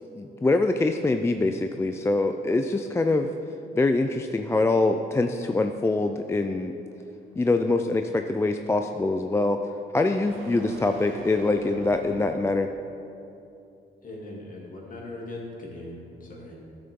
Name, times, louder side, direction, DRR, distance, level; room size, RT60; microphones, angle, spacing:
voice 1, 0.0-3.3 3.7-6.7 7.4-9.6 9.9-12.7, left 2 dB, 15° left, 6 dB, 0.3 m, -24 dB
sound 1, 5.4-12.5, right 3 dB, 85° right, 1.1 m, -46 dB
voice 2, 14.0-16.6, left 1 dB, 45° left, -3 dB, 2.4 m, -40 dB
12.5 x 6.8 x 3.7 m, 2.8 s
cardioid pair, 90°, 20 cm